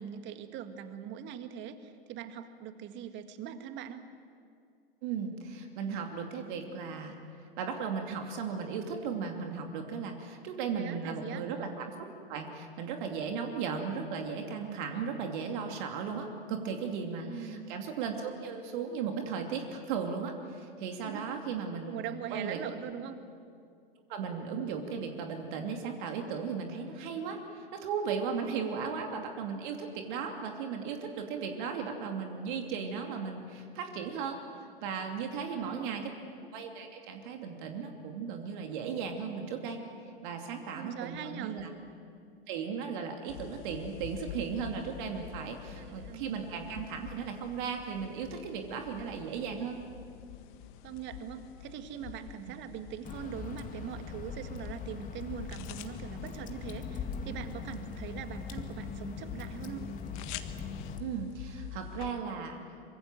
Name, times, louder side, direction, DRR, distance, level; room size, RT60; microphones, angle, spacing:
voice 1, 0.0-4.0 10.7-11.5 17.2-17.7 21.0-21.3 21.9-23.2 28.6-28.7 35.5-36.1 40.8-41.6 45.8-46.3 50.8-59.9, right 9 dB, 40° right, 9 dB, 1.9 m, -42 dB
voice 2, 5.0-7.1 7.6-11.9 12.3-22.0 22.3-22.6 24.1-34.4 34.8-36.1 36.4-41.7 42.5-49.8 61.0-62.6, right 6 dB, 55° right, 3 dB, 2.8 m, -36 dB
sound 1, 43.3-62.1, left 11 dB, 50° left, 1.6 m, -48 dB
Water / Drip, 53.0-61.0, left 5 dB, 25° left, 2.1 m, -41 dB
24.5 x 22.5 x 7.7 m, 2.3 s
hypercardioid pair, 100°, 30 cm